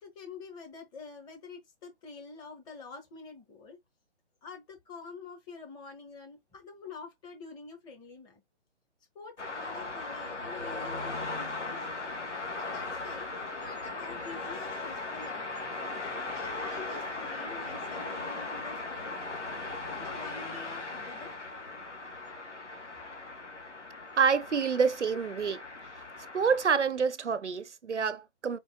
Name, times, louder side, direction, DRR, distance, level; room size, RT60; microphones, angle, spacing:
voice 1, 0.0-3.8 4.4-8.4 9.1-11.9 12.6-15.7 16.3-19.2 19.6-21.4, left 4 dB, 10° left, 1.1 m, -47 dB
sound 1, 9.4-26.7, left 3 dB, 85° left, 2.0 m, -38 dB
voice 2, 24.2-25.6 26.3-28.6, right 6 dB, 80° right, 0.8 m, -27 dB
4.5 x 4.1 x 2.8 m
figure-of-eight pair, 140°, 35 cm